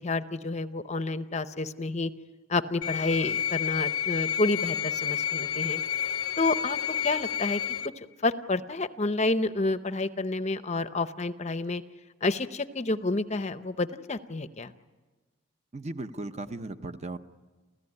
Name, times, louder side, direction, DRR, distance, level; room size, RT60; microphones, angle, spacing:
voice 1, 0.0-2.1 2.5-5.8 6.4-6.8 7.0-7.6 8.0-11.8 12.2-14.7, left 2 dB, 30° left, 12 dB, 0.7 m, -29 dB
sound 1, 2.8-7.9, left 9 dB, 90° left, 0.8 m, -30 dB
voice 2, 15.7-17.2, right 2 dB, 30° right, 10 dB, 0.7 m, -36 dB
29.5 x 15.0 x 9.8 m, 1.3 s
head